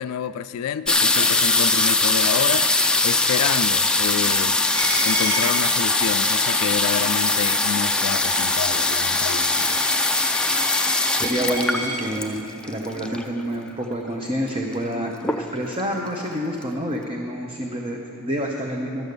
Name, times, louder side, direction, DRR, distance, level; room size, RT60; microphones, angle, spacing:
voice 1, 0.0-2.7 3.0-4.6 5.0-9.8, left 8 dB, 85° left, 13 dB, 0.3 m, -28 dB
sound 1, 0.9-13.4 14.2-14.3 14.5-14.9 15.2-15.8 16.3-16.4 16.6-16.7, left 2 dB, 5° left, 0.4 m, -21 dB
Coin (dropping), 4.7-12.0, right 1 dB, 60° right, 2.5 m, -32 dB
voice 2, 11.2-19.1, equal, 25° right, 0 dB, 0.7 m, -28 dB
12.0 x 8.0 x 6.7 m, 2.7 s
head